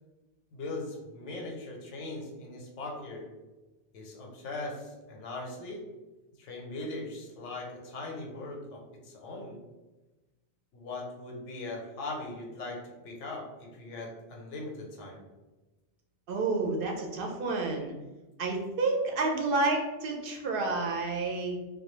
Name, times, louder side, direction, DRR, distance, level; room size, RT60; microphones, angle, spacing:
voice 1, 0.5-3.3 3.9-5.8 6.4-9.6 10.7-15.2, left 2 dB, 90° left, -1 dB, 1.0 m, -40 dB
voice 2, 16.3-17.9 18.4-21.7, right 3 dB, 60° right, 1 dB, 0.6 m, -30 dB
2.3 x 2.1 x 3.0 m, 1.1 s
omnidirectional pair, 1.2 m